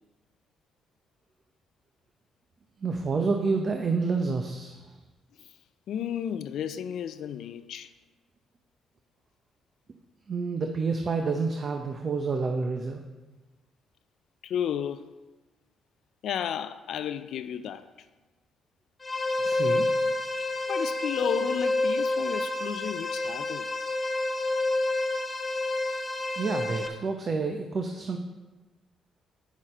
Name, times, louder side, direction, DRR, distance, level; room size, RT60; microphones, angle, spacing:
voice 1, 2.8-4.9 10.3-13.0 19.4-19.9 26.4-28.2, right 4 dB, 45° right, 0.7 m, -29 dB
voice 2, 5.9-7.9 14.4-15.1 16.2-17.9 20.4-23.8, left 9 dB, 70° left, 0.3 m, -33 dB
sound 1, 19.0-26.9, left 2 dB, 25° left, 1.1 m, -28 dB
9.3 x 6.3 x 4.3 m
supercardioid pair, 70°, 0 cm